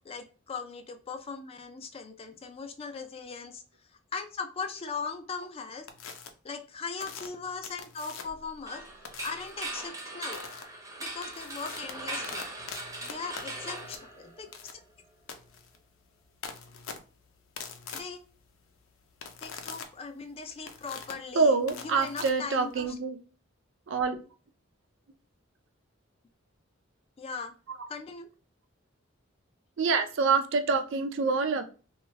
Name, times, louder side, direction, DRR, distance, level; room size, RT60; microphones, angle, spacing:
voice 1, 0.0-3.6 4.1-5.9 6.4-8.8 9.2-10.4 11.0-12.4 13.1-14.8 17.9-18.2 19.4-21.6 21.8-22.9 27.2-27.5 27.9-28.3, left 5 dB, 30° left, 0.3 m, -39 dB
sound 1, 5.9-6.3 7.0-8.5 9.0-9.5 10.3-10.6 11.1-23.0, left 6 dB, 85° left, 0.5 m, -44 dB
sound 2, 8.7-14.6, right 1 dB, 15° right, 0.6 m, -40 dB
voice 2, 21.3-23.2 23.9-24.2 27.8-27.9 29.8-31.7, right 4 dB, 65° right, 0.4 m, -26 dB
2.6 x 2.3 x 3.1 m
head